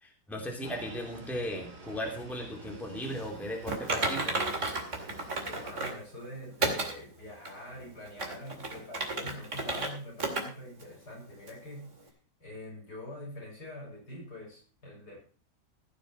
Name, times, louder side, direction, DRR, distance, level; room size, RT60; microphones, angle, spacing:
voice 1, 0.0-4.4, equal, ahead, 1 dB, 2.7 m, -37 dB
sound 1, 0.6-5.7, right 2 dB, 65° right, 3.0 m, -49 dB
Typing, 3.7-6.0 6.6-6.9 7.4-7.5 8.1-9.9 10.2-10.4 10.8-10.9 11.5-11.6, right 2 dB, 45° right, 2.8 m, -32 dB
voice 2, 5.5-12.1 12.4-15.2, left 1 dB, 65° left, -3 dB, 7.3 m, -45 dB
16.0 x 6.8 x 5.9 m, 0.38 s
omnidirectional pair, 1.9 m